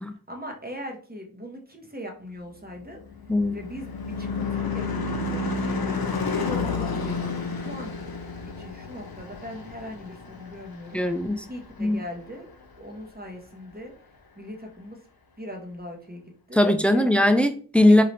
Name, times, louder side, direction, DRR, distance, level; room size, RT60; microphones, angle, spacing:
voice 1, 0.3-3.0 3.5-6.2 6.4-8.1 8.4-11.0 11.5-12.5 12.8-13.9 14.4-15.0 15.4-16.2 16.5-17.1 17.9-18.0, equal, 25° right, 2 dB, 1.0 m, -40 dB
Car passing by / Truck / Engine, 2.8-11.5, left 4 dB, 80° left, 0.7 m, -31 dB
voice 2, 10.9-11.4 11.8-12.0 16.5-18.0, left 1 dB, 5° left, 9 dB, 0.4 m, -19 dB
3.9 x 2.8 x 3.3 m, 0.42 s
wide cardioid pair, 45°, 36 cm